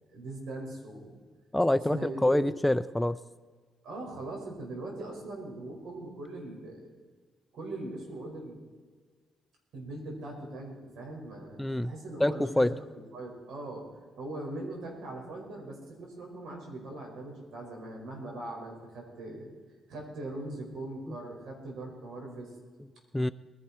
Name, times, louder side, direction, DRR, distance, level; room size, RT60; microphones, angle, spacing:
voice 1, 0.1-1.2 1.9-2.6 3.8-6.9 7.5-8.6 9.7-12.8 13.1-13.9 14.2-19.5 19.9-22.5, right 2 dB, 75° right, 0 dB, 5.3 m, -40 dB
voice 2, 1.5-3.2 11.6-11.9 12.2-12.7 23.1-23.3, left 1 dB, 5° left, 13 dB, 0.4 m, -26 dB
21.0 x 11.0 x 4.3 m, 1.5 s
cardioid pair, 90°, 0 cm